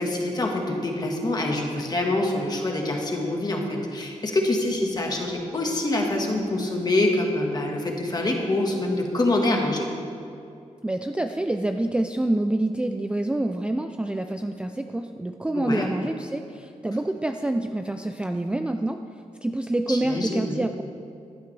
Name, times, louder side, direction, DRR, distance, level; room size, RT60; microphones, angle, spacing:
voice 1, 0.0-9.9 15.5-15.9 19.9-20.6, left 2 dB, 35° left, 1 dB, 1.4 m, -25 dB
voice 2, 10.8-19.0 19.4-20.8, right 1 dB, 10° right, 5 dB, 0.3 m, -27 dB
15.5 x 11.5 x 3.3 m, 2.5 s
wide cardioid pair, 170°, 13 cm